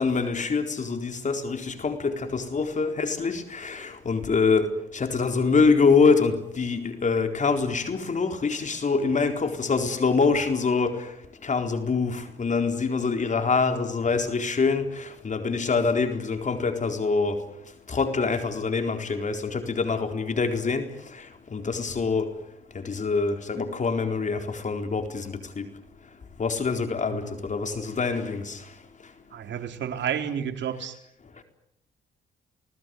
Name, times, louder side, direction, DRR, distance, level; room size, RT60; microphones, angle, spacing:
voice 1, 0.0-4.7 4.9-11.1 11.4-17.4 17.9-20.9 21.1-22.3 22.7-25.7 26.4-28.6, left 4 dB, 40° left, 6 dB, 4.2 m, -25 dB
voice 2, 29.3-31.0, right 8 dB, 65° right, 5 dB, 4.2 m, -30 dB
30.0 x 20.0 x 9.5 m, 0.79 s
cardioid pair, 90°, 20 cm